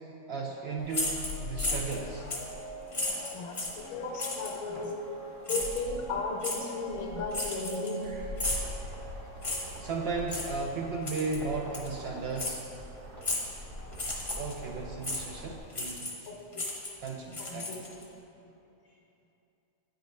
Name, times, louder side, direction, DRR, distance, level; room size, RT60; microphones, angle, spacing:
voice 1, 0.3-2.3 4.7-4.9 8.0-8.2 9.6-12.7 14.3-16.1 17.0-17.8, right 4 dB, 70° right, 0 dB, 0.6 m, -35 dB
sound 1, 0.8-10.6, left 1 dB, 60° left, 0.8 m, -41 dB
sound 2, 0.9-2.0 2.3-2.5 2.9-3.8 4.2-4.6 5.5-5.8 6.4-6.6 7.3-8.0 8.4-8.7 9.4-9.8 10.3-10.5 11.1-11.4 11.7-11.9 12.4-12.6 13.2-13.5 13.9-14.5 15.0-15.2 15.7-16.3 16.5-18.0, left 2 dB, 30° left, 0.8 m, -34 dB
voice 2, 2.9-4.9 5.5-8.0 9.5-9.7 13.8-13.9 16.3-16.6 17.4-17.8, left 3 dB, 80° left, 0 dB, 1.3 m, -36 dB
sound 3, 8.4-15.6, equal, 45° right, 1.1 m, -45 dB
8.9 x 4.8 x 3.1 m, 2.8 s
omnidirectional pair, 1.5 m